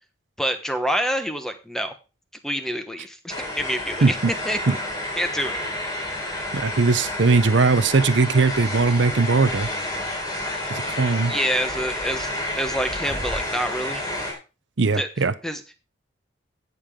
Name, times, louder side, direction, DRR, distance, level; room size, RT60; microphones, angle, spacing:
voice 1, 0.4-2.0 2.4-4.2 4.4-4.8 5.2-5.6 11.3-14.0 15.0-15.1 15.4-15.8, equal, ahead, 1.0 m, -27 dB
sound 1, 3.3-14.3, left 1 dB, 20° left, 4.1 m, -30 dB
voice 2, 6.5-9.7 10.7-11.3 14.8-15.3, right 4 dB, 70° right, 0.7 m, -19 dB
16.0 x 6.9 x 3.7 m
head